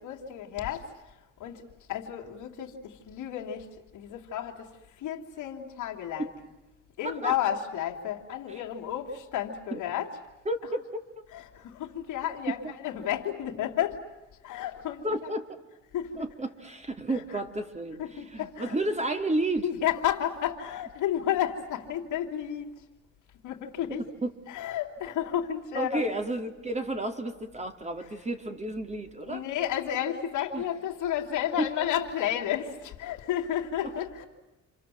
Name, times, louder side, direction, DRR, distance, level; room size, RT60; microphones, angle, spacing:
voice 1, 0.0-6.3 7.0-10.1 11.3-14.1 14.4-15.3 15.9-16.2 17.1-17.4 18.0-18.8 19.6-22.8 23.4-24.0 24.5-26.1 28.0-28.1 29.2-34.2, left 10 dB, 85° left, 2.8 m, -32 dB
voice 2, 7.0-7.4 9.7-9.8 10.4-10.8 15.0-15.6 16.2-18.0 18.3-19.7 24.2-24.3 25.7-29.4 30.5-30.6 31.6-31.7, right 1 dB, 20° right, 3.0 m, -31 dB
30.0 x 26.0 x 7.7 m
cardioid pair, 90°, 30 cm